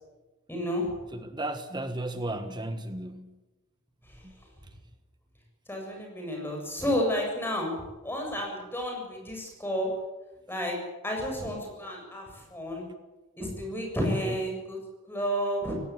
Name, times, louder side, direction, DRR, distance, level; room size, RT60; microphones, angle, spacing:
voice 1, 0.5-0.9 5.7-7.8 8.0-9.9 10.5-10.8 11.0-12.9 13.4-14.8 15.1-15.7, equal, 10° left, 0 dB, 7.5 m, -31 dB
voice 2, 1.1-3.3 4.2-4.3 14.2-14.4, right 1 dB, 20° right, 8 dB, 1.3 m, -34 dB
18.0 x 17.5 x 9.5 m, 1.1 s
head